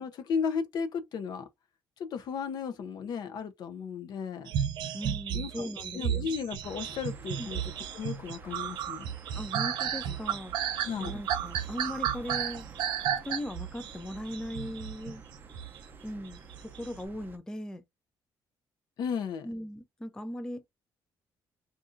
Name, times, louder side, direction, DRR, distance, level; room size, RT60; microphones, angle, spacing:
voice 1, 0.0-1.5 2.0-4.5 5.3-7.6 7.9-9.1 10.8-11.2 19.0-19.5, left 6 dB, 60° left, 0.7 m, -34 dB
sound 1, 4.5-15.8 16.5-16.9, right 9 dB, 80° right, 0.7 m, -33 dB
voice 2, 4.9-6.3 7.4-7.5 9.4-10.6 11.0-12.7 13.2-15.2 16.0-17.8 19.4-20.6, left 1 dB, 10° left, 0.4 m, -39 dB
sound 2, 6.6-17.4, right 5 dB, 25° right, 0.7 m, -49 dB
2.6 x 2.5 x 3.7 m
cardioid pair, 140°, 8 cm